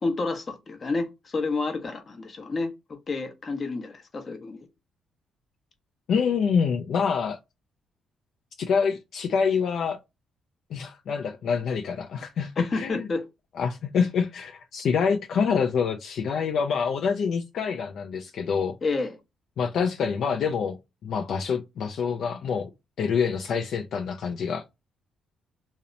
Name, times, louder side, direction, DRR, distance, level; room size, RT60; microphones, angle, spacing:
voice 1, 0.0-4.7 12.6-13.2 18.8-19.1, left 3 dB, 40° left, 0.7 m, -30 dB
voice 2, 6.1-7.4 8.6-10.0 10.7-13.1 13.6-18.8 19.6-22.7 23.0-24.6, left 6 dB, 65° left, 0.3 m, -26 dB
2.7 x 2.0 x 2.5 m
cardioid pair, 90°, 0 cm